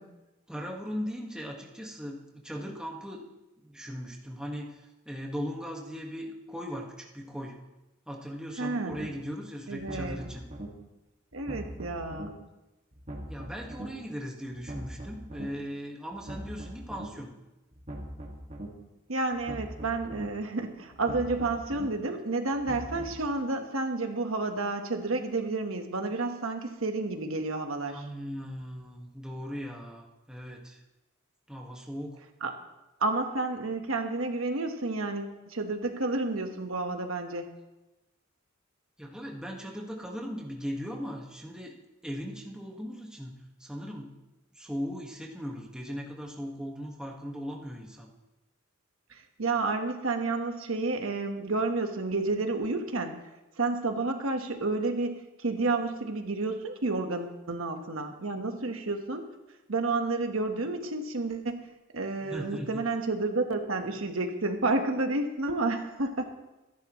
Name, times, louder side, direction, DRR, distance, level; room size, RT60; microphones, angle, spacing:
voice 1, 0.5-3.2 3.6-7.6 8.1-10.4 13.3-17.3 27.9-30.8 31.5-32.2 39.0-41.7 42.0-44.1 44.5-48.1 62.2-62.7, equal, 5° right, -1 dB, 1.6 m, -38 dB
voice 2, 8.6-9.0 9.7-10.2 11.3-12.3 19.1-28.1 32.4-32.5 33.0-37.5 49.1-53.1 53.6-59.2 59.7-61.6 61.9-66.2, right 3 dB, 75° right, 5 dB, 1.4 m, -30 dB
sound 1, 8.9-9.1 9.7-10.7 11.3-12.3 12.9-13.9 14.5-15.5 16.1-17.1 17.7-18.7 19.3-20.3 20.9-21.9 22.5-23.2, right 1 dB, 35° right, 2.1 m, -41 dB
25.0 x 10.5 x 3.1 m, 1.0 s
head